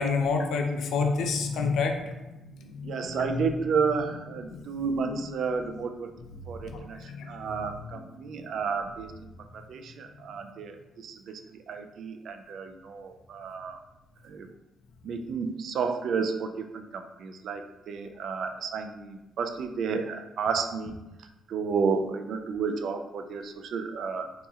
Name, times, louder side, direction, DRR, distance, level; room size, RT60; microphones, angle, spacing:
voice 1, 0.0-3.5 4.5-5.2 6.6-7.3 7.5-8.1, left 4 dB, 75° left, 3 dB, 0.5 m, -30 dB
voice 2, 2.8-6.1 6.5-7.0 7.3-9.1 9.5-10.8 11.0-11.4 11.7-13.8 14.3-14.5 15.0-21.0 21.5-24.3, right 5 dB, 65° right, 6 dB, 0.3 m, -31 dB
3.9 x 2.8 x 2.4 m, 1.0 s
cardioid pair, 90°, 0 cm